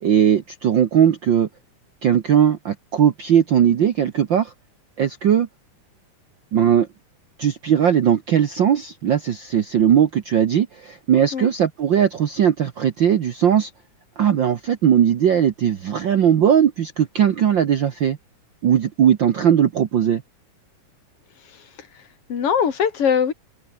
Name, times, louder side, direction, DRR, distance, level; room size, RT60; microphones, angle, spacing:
voice 1, 0.0-1.5 2.0-4.5 5.0-5.5 6.5-6.9 7.4-13.7 14.2-18.2 18.6-20.2, right 9 dB, 80° right, 1.0 m, -18 dB
voice 2, 21.4-22.0 22.3-23.3, left 7 dB, 45° left, 3.3 m, -22 dB
omnidirectional pair, 3.8 m